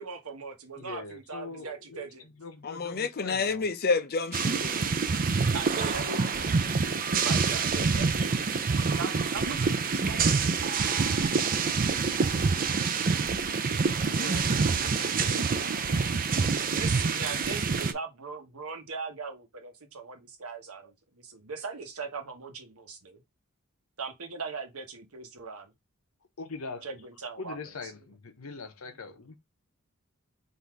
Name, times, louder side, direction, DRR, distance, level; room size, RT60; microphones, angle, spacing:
voice 1, 0.0-2.3 5.5-6.6 7.1-8.6 9.0-10.6 16.7-23.2 24.0-25.7 26.8-27.6, right 4 dB, 80° right, 1.1 m, -40 dB
voice 2, 0.8-3.7 14.1-16.1 16.7-16.8 26.4-26.9 27.4-29.4, left 4 dB, 70° left, 0.9 m, -42 dB
voice 3, 2.6-4.9, left 4 dB, 45° left, 0.6 m, -29 dB
sound 1, 4.3-17.9, right 5 dB, 40° right, 0.5 m, -26 dB
4.0 x 2.7 x 4.6 m
head